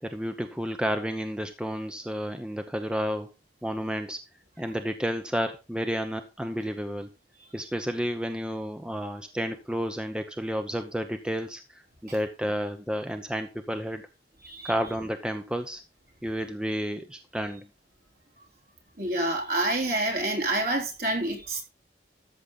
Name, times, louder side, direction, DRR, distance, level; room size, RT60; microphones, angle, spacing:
voice 1, 0.0-3.3 3.6-4.2 4.6-7.1 7.5-14.0 14.6-15.8 16.2-17.7, equal, 5° right, 0.8 m, -31 dB
voice 2, 19.0-21.6, right 1 dB, 55° right, 3.7 m, -27 dB
13.5 x 7.3 x 3.9 m
head